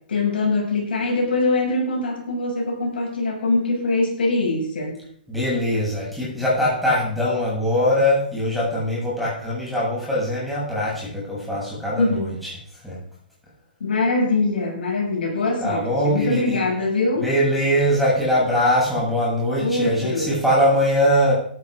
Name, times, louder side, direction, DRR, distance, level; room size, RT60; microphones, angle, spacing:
voice 1, 0.1-4.9 12.0-12.3 13.8-17.3 19.6-20.3, left 2 dB, 75° left, -1 dB, 6.7 m, -23 dB
voice 2, 5.3-12.5 12.8-13.0 15.6-16.6 17.2-21.3, equal, ahead, -8 dB, 7.8 m, -22 dB
13.5 x 11.0 x 5.0 m, 0.62 s
hypercardioid pair, 145°, 5 cm